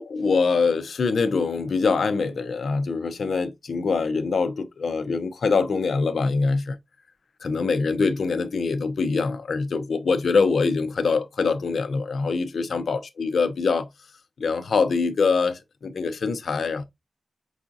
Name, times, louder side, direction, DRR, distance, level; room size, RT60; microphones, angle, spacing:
voice 1, 0.0-6.7 7.4-13.9 14.4-16.8, left 4 dB, 80° left, 0.5 m, -24 dB
4.8 x 2.4 x 2.5 m
wide cardioid pair, 115°, 0 cm